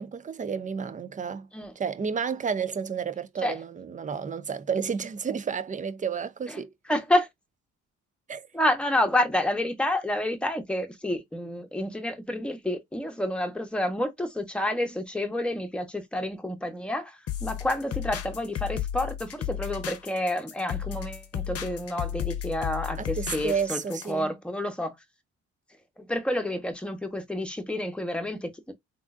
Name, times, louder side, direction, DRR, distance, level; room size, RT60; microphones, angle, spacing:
voice 1, 0.0-1.5 1.8-6.7 8.3-8.5 23.0-24.3, right 6 dB, 25° right, 0.5 m, -31 dB
voice 2, 6.9-7.3 8.5-23.8 24.1-24.9 26.1-28.7, left 1 dB, 5° left, 1.0 m, -29 dB
sound 1, 17.3-24.1, left 10 dB, 50° left, 0.8 m, -34 dB
3.6 x 2.5 x 2.4 m
cardioid pair, 90°, 30 cm